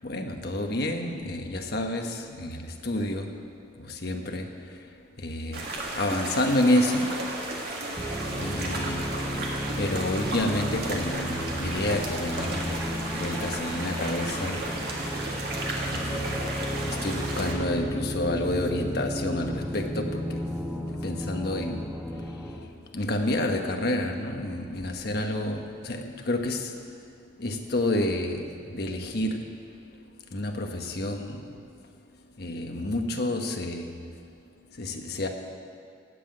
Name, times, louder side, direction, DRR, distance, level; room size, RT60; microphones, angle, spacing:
voice 1, 0.0-3.3 4.0-4.5 5.2-5.6 6.0-7.1 8.4-9.0 9.8-12.7 13.1-14.6 15.9-16.4 16.9-20.3 21.0-21.8 22.9-26.7 27.4-28.4 28.7-29.4 30.3-31.4 32.4-33.8 34.8-35.3, left 1 dB, 55° left, 4 dB, 1.1 m, -29 dB
sound 1, 5.5-17.5, right 2 dB, 55° right, 1.8 m, -34 dB
sound 2, 8.0-22.6, equal, ahead, 1.1 m, -33 dB
15.0 x 5.8 x 8.9 m, 2.2 s
head